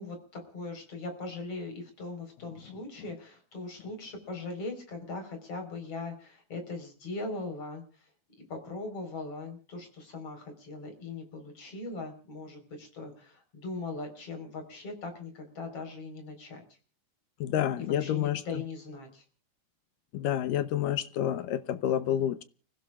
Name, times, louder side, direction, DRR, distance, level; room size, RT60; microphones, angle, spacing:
voice 1, 0.0-8.1 8.5-16.6 17.8-19.2, left 3 dB, 40° left, 4 dB, 5.2 m, -40 dB
voice 2, 17.4-18.4 20.1-22.4, left 11 dB, 75° left, 13 dB, 2.3 m, -29 dB
30.0 x 16.0 x 2.4 m, 0.40 s
omnidirectional pair, 4.2 m